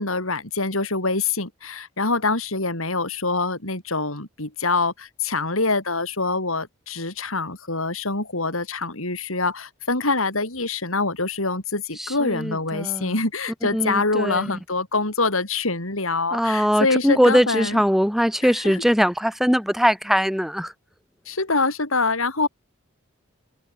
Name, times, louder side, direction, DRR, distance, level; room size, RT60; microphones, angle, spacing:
voice 1, 0.0-17.8 18.4-18.8 21.3-22.5, left 3 dB, 80° left, 6.5 m, -25 dB
voice 2, 12.0-13.1 13.7-14.5 16.3-20.7, equal, ahead, 6.7 m, -21 dB
head